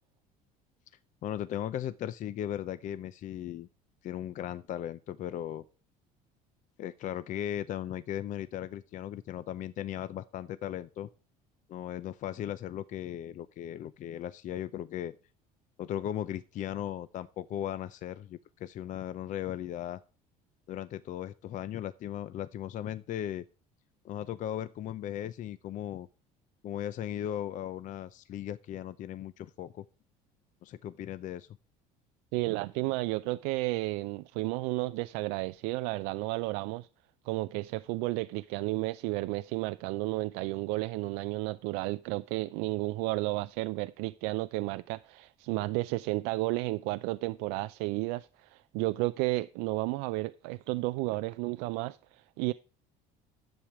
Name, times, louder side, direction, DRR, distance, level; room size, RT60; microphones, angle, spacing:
voice 1, 1.2-3.7 4.0-5.6 6.8-11.1 11.7-15.1 15.8-20.0 20.7-23.4 24.0-26.1 26.6-29.8 30.6-31.5, left 11 dB, 50° left, 0.5 m, -37 dB
voice 2, 32.3-36.9 37.3-52.5, right 21 dB, 80° right, 0.4 m, -32 dB
10.5 x 7.3 x 4.8 m
supercardioid pair, 95°, 17 cm